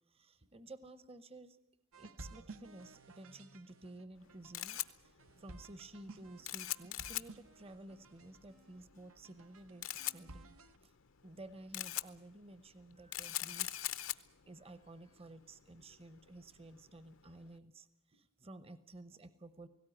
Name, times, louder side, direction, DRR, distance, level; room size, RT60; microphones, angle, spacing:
voice 1, 0.1-1.6 2.0-10.5 10.8-10.9 11.2-19.7, right 2 dB, 30° right, 14 dB, 0.8 m, -53 dB
sound 1, 1.9-10.8, right 2 dB, 80° right, 1.0 m, -56 dB
Camera, 4.2-17.5, left 14 dB, 70° left, 0.8 m, -44 dB
18.0 x 17.0 x 9.9 m, 0.88 s
head